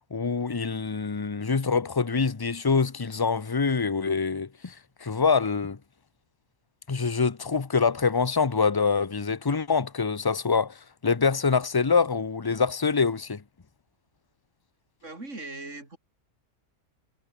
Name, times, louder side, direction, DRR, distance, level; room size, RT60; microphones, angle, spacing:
voice 1, 0.1-4.7 5.0-5.8 6.9-13.4, left 5 dB, 25° left, 0.5 m, -25 dB
voice 2, 15.0-16.0, right 2 dB, 50° right, 5.6 m, -39 dB
omnidirectional pair, 1.6 m